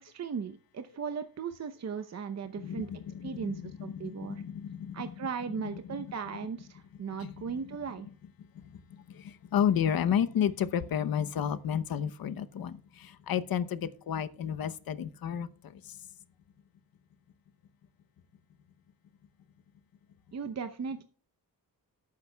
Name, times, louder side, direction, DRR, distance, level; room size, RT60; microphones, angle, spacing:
voice 1, 0.0-2.9 3.2-4.4 4.9-8.1 20.3-21.0, right 6 dB, 45° right, 0.8 m, -37 dB
voice 2, 2.6-5.1 6.0-6.1 7.2-7.3 8.5-16.0, left 9 dB, 75° left, 0.9 m, -32 dB
18.0 x 8.6 x 2.3 m
cardioid pair, 110°, 36 cm